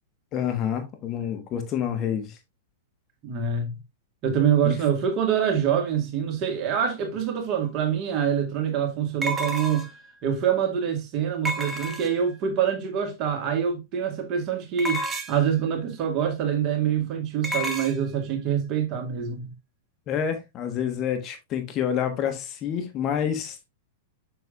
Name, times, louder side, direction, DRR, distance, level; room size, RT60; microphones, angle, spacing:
voice 1, 0.3-2.4 4.6-4.7 20.1-23.6, left 8 dB, 35° left, 1.3 m, -28 dB
voice 2, 3.2-3.8 4.2-9.9 10.2-19.5, right 8 dB, 40° right, 1.9 m, -25 dB
sound 1, 7.6-7.7 9.2-10.1 11.5-12.4 14.8-15.5 17.4-18.0, equal, 20° right, 1.1 m, -30 dB
6.9 x 6.3 x 2.4 m
hypercardioid pair, 100°, 0 cm